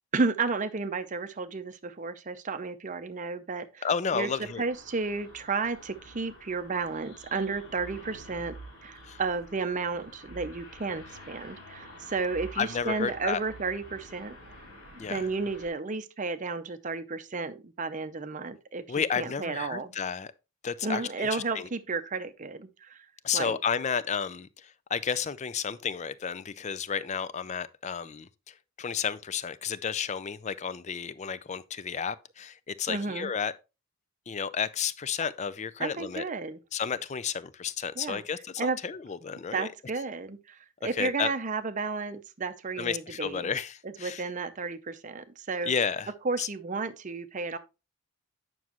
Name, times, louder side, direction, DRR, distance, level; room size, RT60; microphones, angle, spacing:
voice 1, 0.1-3.9 4.1-4.3 4.6-8.6 8.8-19.9 20.8-23.1 23.3-23.6 32.9-33.3 35.8-36.6 38.0-38.2 38.6-38.8 39.5-43.5 44.0-45.7 46.2-47.6, right 4 dB, 35° right, 0.6 m, -32 dB
voice 2, 3.8-4.6 9.0-9.2 12.6-13.4 15.0-15.3 18.9-20.3 20.6-21.7 23.2-33.5 34.3-36.2 36.7-39.7 41.0-41.3 42.8-44.2 45.7-46.1 46.4-46.5, left 6 dB, 30° left, 0.4 m, -32 dB
sound 1, 4.2-15.7, right 1 dB, 75° left, 3.3 m, -48 dB
9.3 x 6.1 x 3.0 m
head